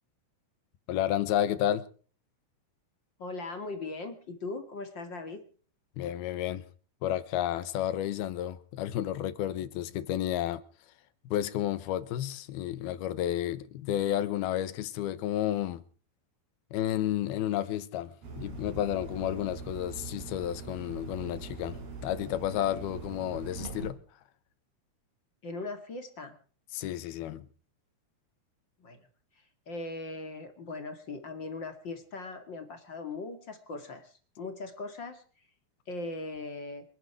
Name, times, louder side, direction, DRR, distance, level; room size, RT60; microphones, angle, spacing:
voice 1, 0.9-1.9 6.0-6.6 7.0-10.6 11.3-15.8 16.7-24.0 26.7-27.5, left 12 dB, 80° left, 3.0 m, -31 dB
voice 2, 3.2-5.4 25.4-26.3 28.8-29.0 29.7-35.2 35.9-36.8, left 3 dB, 35° left, 2.5 m, -39 dB
sound 1, 18.2-23.9, right 4 dB, 75° right, 6.2 m, -42 dB
28.0 x 11.0 x 4.7 m
omnidirectional pair, 4.5 m